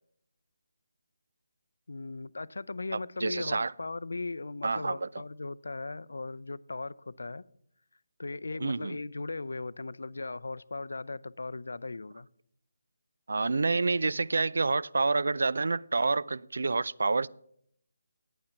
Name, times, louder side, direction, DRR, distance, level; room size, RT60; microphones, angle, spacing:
voice 1, 1.9-7.4 8.2-12.3, left 3 dB, 90° left, 0.4 m, -38 dB
voice 2, 2.9-3.7 4.6-5.1 8.6-9.0 13.3-17.3, right 3 dB, 65° right, 0.3 m, -28 dB
9.3 x 8.8 x 5.7 m
hypercardioid pair, 175°, 0 cm